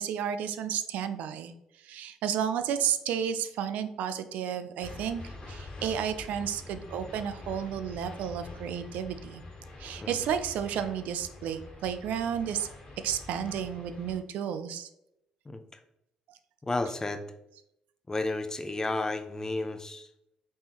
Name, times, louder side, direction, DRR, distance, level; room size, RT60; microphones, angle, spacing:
voice 1, 0.0-1.5 1.8-5.2 5.5-9.4 9.8-12.7 13.0-14.9, right 8 dB, 75° right, 10 dB, 0.4 m, -32 dB
sound 1, 4.8-14.2, left 2 dB, 45° left, 1.4 m, -45 dB
voice 2, 16.6-17.3 18.1-20.1, left 2 dB, 20° left, 8 dB, 0.6 m, -32 dB
4.2 x 3.5 x 2.9 m, 0.81 s
hypercardioid pair, 55°, 3 cm